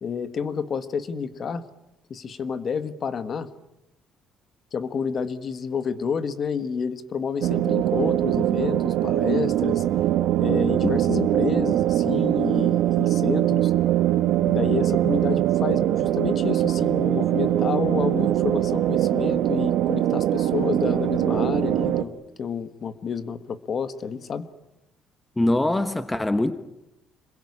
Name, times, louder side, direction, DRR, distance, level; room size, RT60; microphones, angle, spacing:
voice 1, 0.0-1.6 2.1-3.5 4.7-9.8 10.4-13.7 14.4-24.5, left 6 dB, 40° left, 13 dB, 1.5 m, -29 dB
sound 1, 7.4-22.0, right 13 dB, 80° right, 1.3 m, -22 dB
voice 2, 25.4-26.5, left 1 dB, 10° left, 11 dB, 1.1 m, -22 dB
27.0 x 21.5 x 9.8 m, 0.87 s
cardioid pair, 140°, 0 cm